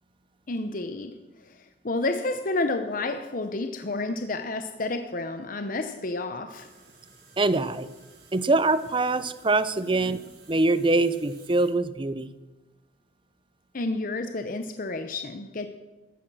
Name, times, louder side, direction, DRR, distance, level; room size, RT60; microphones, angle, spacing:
voice 1, 0.5-6.7 9.8-10.0 13.7-15.7, left 2 dB, 50° left, 8 dB, 0.9 m, -30 dB
sound 1, 6.5-11.7, right 4 dB, 70° right, 5.6 m, -55 dB
voice 2, 7.4-7.9 8.3-10.2 10.5-12.3, right 2 dB, 30° right, 14 dB, 0.7 m, -23 dB
15.5 x 13.0 x 6.3 m, 1.2 s
head